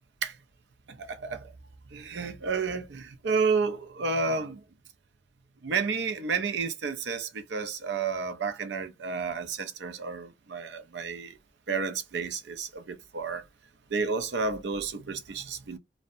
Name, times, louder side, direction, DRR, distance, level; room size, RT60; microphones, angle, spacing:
voice 1, 1.0-1.5 1.9-4.6 5.6-11.3 11.7-13.4 13.9-15.8, right 4 dB, 80° right, 0.5 m, -31 dB
2.6 x 2.1 x 2.5 m
head